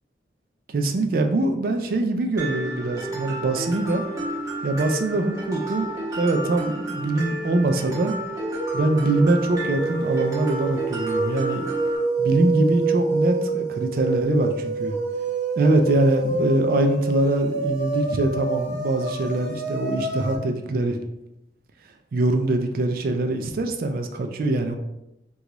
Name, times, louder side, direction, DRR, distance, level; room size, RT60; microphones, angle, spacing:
voice 1, 0.7-4.0 4.6-8.2 8.7-11.7 12.2-14.9 15.6-21.0 22.1-24.8, right 2 dB, 55° right, 5 dB, 0.3 m, -23 dB
Mallet percussion, 2.4-12.0, right 1 dB, 20° right, 0.8 m, -32 dB
sound 1, 8.4-20.4, right 2 dB, 80° right, 0.7 m, -27 dB
3.0 x 2.3 x 3.8 m, 0.87 s
head